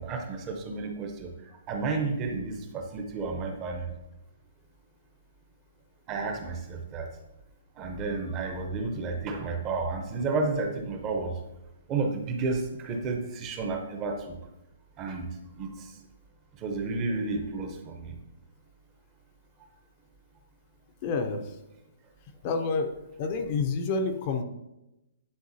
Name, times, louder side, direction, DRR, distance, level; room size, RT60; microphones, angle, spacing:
voice 1, 0.0-3.9 6.1-7.1 7.8-11.4 11.9-14.4 15.0-15.3 15.5-16.0 16.6-18.2, right 3 dB, 20° right, 4 dB, 0.7 m, -32 dB
voice 2, 21.0-21.4 22.4-22.9 23.2-24.4, left 4 dB, 35° left, 6 dB, 0.5 m, -28 dB
9.7 x 3.7 x 2.7 m, 0.93 s
hypercardioid pair, 160°, 0 cm